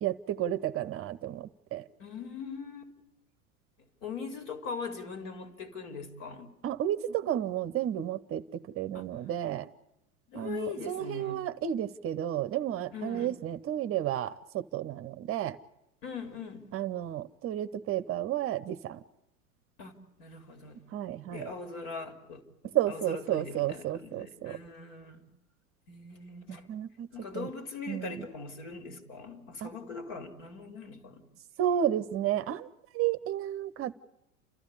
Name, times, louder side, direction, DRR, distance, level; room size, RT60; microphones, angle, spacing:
voice 1, 0.0-1.8 6.6-8.4 8.8-9.7 10.3-15.6 16.7-19.0 20.9-21.5 22.7-24.6 26.5-27.1 27.3-27.5 27.9-28.3 29.6-29.7 31.6-32.7 32.9-33.9, right 11 dB, 30° right, 13 dB, 0.8 m, -32 dB
voice 2, 2.0-2.9 4.0-6.5 8.9-9.1 10.3-11.4 12.9-13.4 16.0-16.7 19.8-20.8 21.3-25.3 25.9-26.7 27.1-31.2, left 5 dB, 60° left, 7 dB, 3.5 m, -41 dB
29.5 x 13.5 x 9.9 m, 0.86 s
hypercardioid pair, 90°, 43 cm